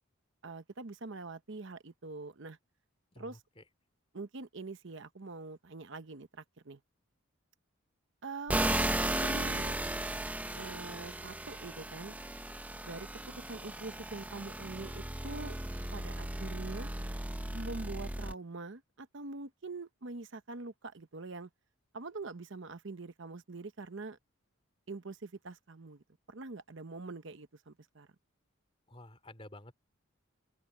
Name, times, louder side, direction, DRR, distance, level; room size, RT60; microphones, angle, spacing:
voice 1, 0.4-2.6 3.2-3.4 4.1-6.8 8.2-8.6 9.2-9.8 10.6-12.1 12.8-13.1 13.4-15.6 15.9-16.9 17.5-21.5 21.9-24.2 24.9-28.1, right 3 dB, 60° right, 0.9 m, -44 dB
voice 2, 3.1-3.6 28.9-29.7, left 1 dB, 25° left, 2.9 m, -51 dB
sound 1, 8.5-18.3, right 1 dB, 5° right, 0.6 m, -36 dB
open air
head